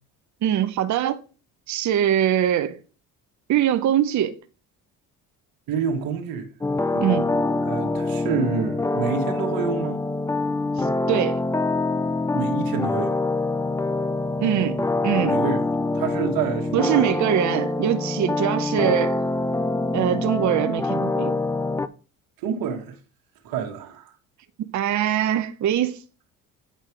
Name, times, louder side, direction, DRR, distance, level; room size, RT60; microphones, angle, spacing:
voice 1, 0.4-1.2 1.7-2.8 3.5-4.4 7.0-7.4 10.8-11.4 14.4-15.5 16.7-19.2 19.9-21.4 24.6-26.0, right 11 dB, 50° right, 0.8 m, -23 dB
voice 2, 5.7-6.5 6.9-7.1 7.6-10.0 12.3-13.2 15.3-15.6 15.9-17.2 22.4-23.0 23.4-24.1, right 6 dB, 70° right, 1.5 m, -28 dB
sound 1, 6.6-21.9, left 2 dB, 10° left, 0.4 m, -25 dB
9.1 x 4.5 x 4.6 m
supercardioid pair, 80°, 36 cm